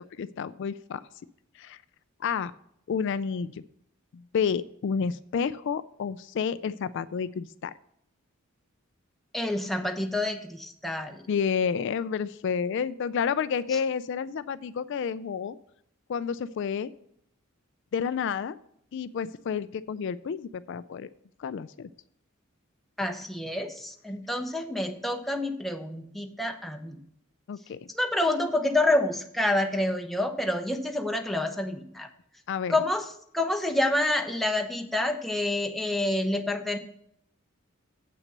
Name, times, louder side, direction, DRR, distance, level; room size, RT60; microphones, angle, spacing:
voice 1, 0.2-1.0 1.6-1.8 2.2-2.5 2.9-3.6 4.1-7.7 11.3-15.6 16.1-16.9 17.9-18.6 18.9-21.1 21.4-21.9 27.5-27.8 32.5-32.8, left 6 dB, 60° left, 15 dB, 0.3 m, -30 dB
voice 2, 9.3-11.2 23.0-27.0 27.9-32.1 32.7-33.0 33.3-36.8, left 1 dB, ahead, 4 dB, 0.8 m, -28 dB
7.9 x 5.9 x 6.6 m, 0.72 s
head